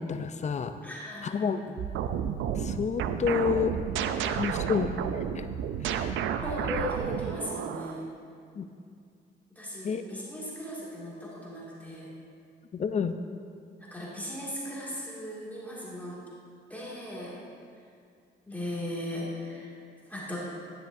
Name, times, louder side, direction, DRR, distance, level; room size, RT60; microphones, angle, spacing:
voice 1, 0.0-0.7 1.3-1.8 2.6-3.8 4.2-4.9 5.4-5.5 5.8-6.1 8.6-8.7 9.8-10.0 12.8-13.2, left 6 dB, 35° left, 9 dB, 0.5 m, -29 dB
voice 2, 0.8-1.4 4.1-4.5 6.2-8.0 9.5-12.1 13.8-16.1 16.7-17.4 18.5-19.7 20.1-20.4, left 1 dB, 10° left, -7 dB, 2.3 m, -37 dB
sound 1, 1.8-8.0, right 8 dB, 75° right, 0.5 m, -31 dB
10.5 x 10.0 x 2.7 m, 2.3 s
cardioid pair, 90°, 20 cm